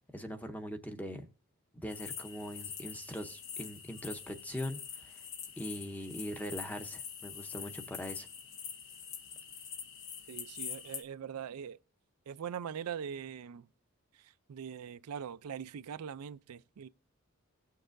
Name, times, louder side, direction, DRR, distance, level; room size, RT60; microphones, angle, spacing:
voice 1, 0.1-1.3 1.7-5.2 5.6-8.3, equal, 5° left, 0.7 m, -41 dB
sound 1, 1.9-11.0, left 7 dB, 55° left, 1.0 m, -45 dB
voice 2, 10.3-11.8 12.3-13.7 14.1-16.9, right 8 dB, 90° right, 0.4 m, -42 dB
17.0 x 6.6 x 2.6 m
head